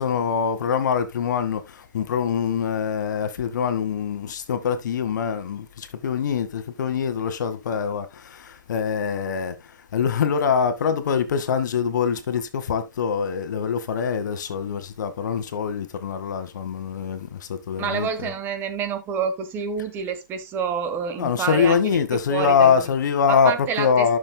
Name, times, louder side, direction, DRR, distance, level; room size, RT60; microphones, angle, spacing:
voice 1, 0.0-18.3 21.2-24.2, left 7 dB, 65° left, 1.5 m, -24 dB
voice 2, 17.8-21.8 22.3-22.7 23.3-24.2, right 6 dB, 20° right, 1.1 m, -28 dB
13.0 x 6.6 x 2.2 m
hypercardioid pair, 150°, 10 cm